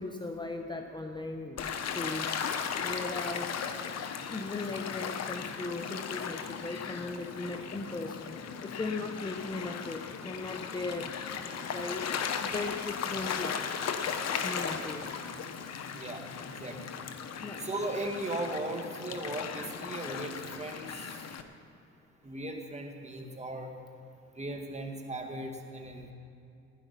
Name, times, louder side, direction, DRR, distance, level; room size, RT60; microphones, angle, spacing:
voice 1, 0.0-1.6 1.9-3.6 4.3-13.7 14.4-15.1 17.4-17.7, left 3 dB, 15° left, 4 dB, 0.8 m, -38 dB
Gull seagull / Waves surf, 1.6-21.4, left 7 dB, 60° left, 1.0 m, -37 dB
voice 2, 15.9-16.8 17.6-21.0 22.2-23.7 24.4-26.1, right 1 dB, 20° right, 2 dB, 1.9 m, -37 dB
15.5 x 10.5 x 5.7 m, 2.6 s
cardioid pair, 90°, 30 cm